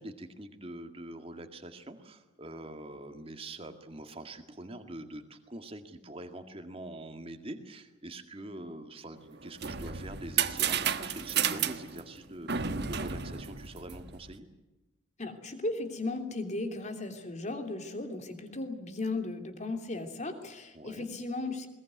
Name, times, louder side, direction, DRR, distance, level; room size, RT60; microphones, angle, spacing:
voice 1, 0.0-14.5 20.7-21.1, right 1 dB, 30° right, 6 dB, 2.0 m, -44 dB
sound 1, 9.3-14.3, right 8 dB, 55° right, 1.4 m, -32 dB
voice 2, 15.2-21.7, left 2 dB, 35° left, 6 dB, 3.0 m, -36 dB
21.0 x 20.0 x 9.5 m, 1.1 s
head